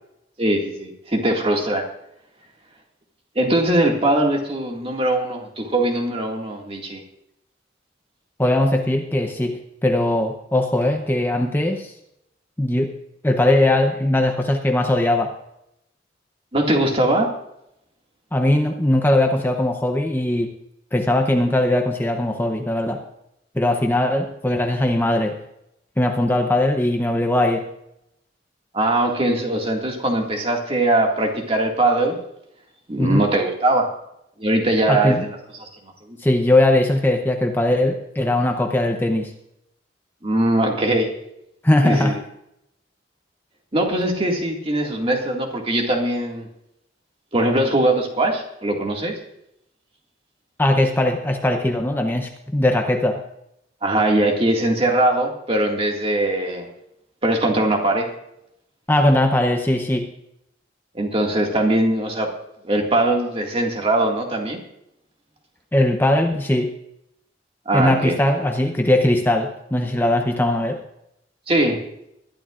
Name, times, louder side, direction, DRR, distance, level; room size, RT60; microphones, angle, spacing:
voice 1, 0.4-1.8 3.4-7.0 16.5-17.3 28.7-32.2 32.9-33.9 34.4-35.7 36.1-36.2 40.2-41.1 41.8-42.2 43.7-46.5 47.3-49.2 53.8-56.7 57.2-58.1 60.9-62.3 62.6-64.6 67.7-68.2 71.5-71.8, right 1 dB, 30° right, 1 dB, 2.1 m, -21 dB
voice 2, 8.4-11.9 12.6-12.9 13.2-15.3 18.3-20.5 20.9-23.0 23.5-25.3 26.0-27.7 33.0-33.2 34.9-35.2 36.2-39.3 41.6-42.2 50.6-53.2 58.9-60.1 65.7-66.7 67.7-70.8, left 1 dB, 10° left, 4 dB, 0.8 m, -20 dB
21.5 x 11.5 x 2.5 m, 0.81 s
head